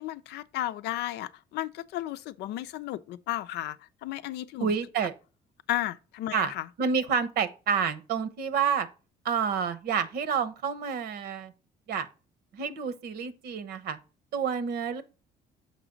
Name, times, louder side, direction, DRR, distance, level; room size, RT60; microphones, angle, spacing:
voice 1, 0.0-4.8 5.7-6.7, left 14 dB, 80° left, 0.5 m, -34 dB
voice 2, 4.6-5.1 6.3-6.5 6.8-8.9 9.2-11.5 11.9-12.1 12.5-14.0 14.3-15.0, right 6 dB, 70° right, 1.0 m, -29 dB
6.6 x 5.0 x 3.8 m
cardioid pair, 110°, 17 cm